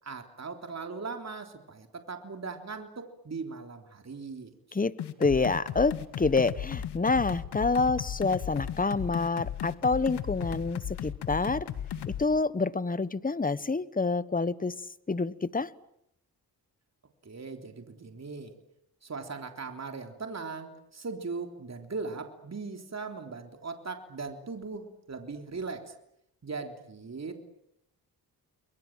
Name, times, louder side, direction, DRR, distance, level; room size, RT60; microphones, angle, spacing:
voice 1, 0.0-4.8 17.2-18.5 19.0-26.0 26.4-27.4, right 4 dB, 40° right, 5 dB, 3.6 m, -39 dB
sound 1, 5.0-12.2, left 10 dB, 85° left, 1.8 m, -36 dB
voice 2, 5.2-11.7 12.1-14.7 15.1-15.7, left 3 dB, 20° left, 17 dB, 1.3 m, -27 dB
30.0 x 22.5 x 7.6 m, 0.77 s
cardioid pair, 55°, 39 cm